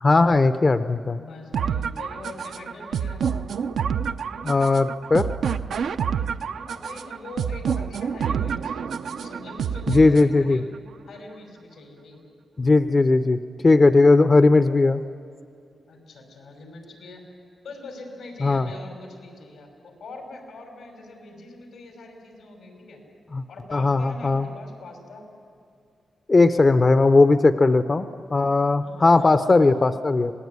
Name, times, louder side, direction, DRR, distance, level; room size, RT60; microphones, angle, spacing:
voice 1, 0.0-1.2 4.4-5.3 9.9-10.6 12.6-15.0 18.4-18.7 23.3-23.4 23.7-24.4 26.3-28.1 28.3-30.3, left 3 dB, 35° left, 10 dB, 0.7 m, -18 dB
voice 2, 1.1-3.4 6.7-8.7 9.1-10.6 11.1-12.2 15.9-17.2 17.6-23.0 23.5-25.2 28.8-30.0, left 2 dB, 90° left, 3 dB, 5.7 m, -43 dB
sound 1, 1.5-10.5, right 7 dB, 85° right, 0.7 m, -28 dB
26.5 x 19.0 x 9.6 m, 2.4 s
cardioid pair, 85°, 0 cm